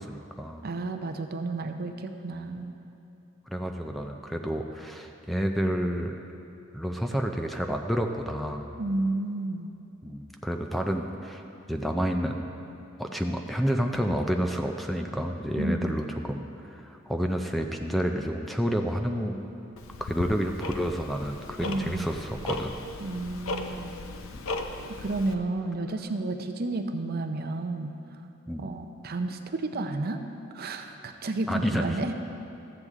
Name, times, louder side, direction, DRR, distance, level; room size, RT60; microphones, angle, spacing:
voice 1, 0.0-0.7 3.5-6.2 6.7-8.7 10.0-11.4 11.7-12.4 13.0-19.5 20.0-22.8 24.3-24.5 28.5-28.7 31.5-31.8, equal, ahead, 3 dB, 0.4 m, -29 dB
voice 2, 0.6-2.7 8.8-9.7 15.6-16.0 21.6-22.1 23.0-23.9 25.0-27.9 28.6-30.2 30.5-32.1, right 2 dB, 50° right, 6 dB, 0.6 m, -31 dB
Tick-tock, 19.8-25.3, left 2 dB, 85° left, 0.6 m, -37 dB
13.5 x 8.0 x 3.6 m, 2.7 s
head